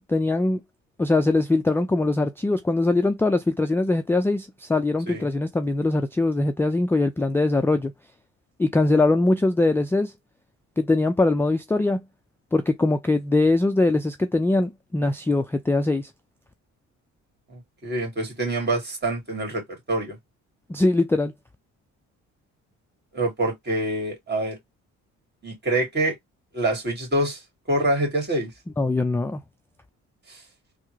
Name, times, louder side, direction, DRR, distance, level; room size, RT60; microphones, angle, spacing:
voice 1, 0.1-0.6 1.0-7.9 8.6-10.1 10.8-12.0 12.5-16.1 20.7-21.3 28.8-29.4, left 2 dB, 10° left, 0.3 m, -22 dB
voice 2, 17.5-19.6 19.9-20.2 23.1-24.6 25.4-26.1 26.5-27.4 27.7-28.5, right 1 dB, 35° right, 1.9 m, -25 dB
3.4 x 2.0 x 3.1 m
cardioid pair, 90°, 30 cm